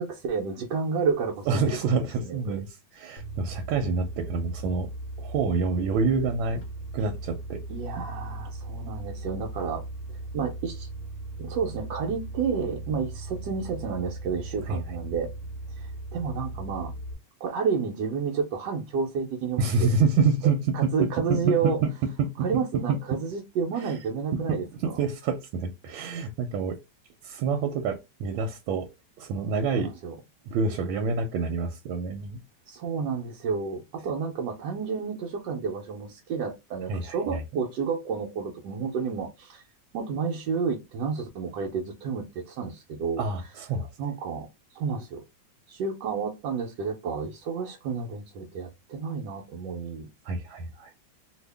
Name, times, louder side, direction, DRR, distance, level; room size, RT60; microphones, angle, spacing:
voice 1, 0.0-1.6 2.2-2.4 7.7-9.8 10.3-10.9 11.4-15.3 15.8-16.9 17.4-19.9 20.7-21.8 22.4-24.9 29.7-30.1 32.7-39.6 39.9-43.2 44.0-45.2 45.7-50.1, right 5 dB, 70° right, 1.2 m, -30 dB
voice 2, 1.5-4.9 5.2-6.6 6.9-7.6 14.7-14.8 19.6-20.9 21.3-22.3 22.9-23.0 23.8-23.9 24.5-26.8 27.2-28.9 29.2-29.9 30.5-32.4 36.9-37.4 43.2-43.9 50.2-50.9, right 4 dB, 90° right, 1.4 m, -27 dB
sound 1, 3.2-17.1, right 2 dB, 55° left, 0.8 m, -38 dB
2.7 x 2.7 x 3.3 m
omnidirectional pair, 2.1 m